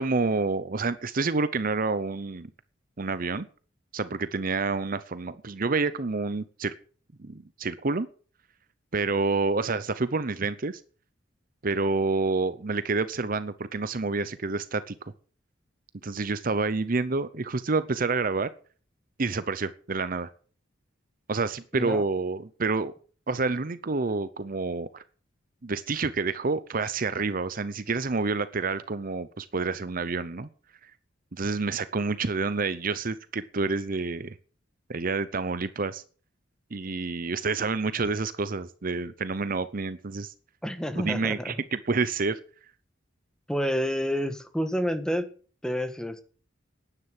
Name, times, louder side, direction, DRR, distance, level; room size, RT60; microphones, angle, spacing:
voice 1, 0.0-2.5 3.0-3.5 3.9-6.7 7.2-8.1 8.9-10.8 11.6-15.1 16.0-18.5 19.2-20.3 21.3-22.9 23.3-25.0 25.6-30.5 30.8-30.9 31.3-34.4 34.9-36.0 36.7-40.3 41.0-42.4, right 3 dB, 45° right, 14 dB, 0.8 m, -28 dB
voice 2, 40.6-41.6 43.5-45.3 45.6-46.2, equal, 5° left, 9 dB, 1.5 m, -29 dB
11.5 x 10.0 x 7.6 m, 0.41 s
head